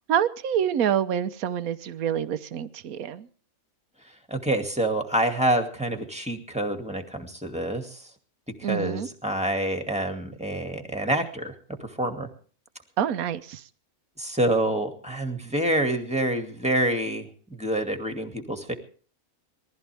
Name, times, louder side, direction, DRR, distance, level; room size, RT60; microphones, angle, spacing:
voice 1, 0.1-3.3 8.6-9.1 13.0-13.6, right 9 dB, 75° right, 1.3 m, -27 dB
voice 2, 4.3-8.0 8.6-11.5 11.8-12.3 14.2-18.7, right 1 dB, 5° right, 2.2 m, -27 dB
21.5 x 15.0 x 3.5 m
omnidirectional pair, 1.5 m